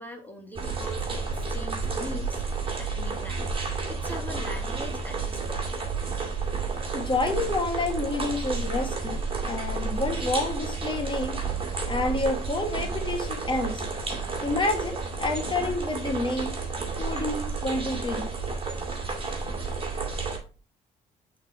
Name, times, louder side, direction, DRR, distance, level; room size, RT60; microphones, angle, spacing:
voice 1, 0.0-2.4 2.8-3.4 3.9-5.7, equal, 10° left, 4 dB, 1.6 m, -41 dB
sound 1, 0.6-20.4, right 4 dB, 30° right, 2.4 m, -31 dB
voice 2, 6.9-11.4 11.9-13.8 14.4-16.5 17.0-18.3, left 2 dB, 25° left, 4 dB, 1.9 m, -29 dB
5.8 x 4.0 x 4.6 m, 0.35 s
supercardioid pair, 70°, 18 cm